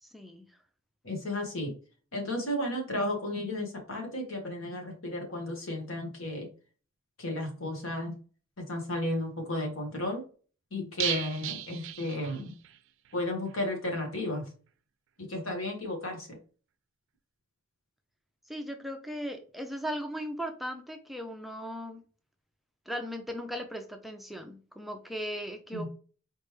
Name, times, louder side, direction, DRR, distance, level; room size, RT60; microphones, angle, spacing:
voice 1, 0.0-0.5 18.5-22.0 22.9-25.9, equal, ahead, 4 dB, 0.4 m, -37 dB
voice 2, 1.0-1.7 2.1-6.5 7.2-8.1 8.6-10.2 10.7-12.5 13.1-14.4 15.2-16.4 25.7-25.9, left 1 dB, 75° left, 1 dB, 1.6 m, -33 dB
sound 1, 11.0-12.8 13.1-13.2 13.5-13.6, right 12 dB, 65° right, 0.4 m, -35 dB
4.2 x 3.2 x 3.2 m, 0.38 s
head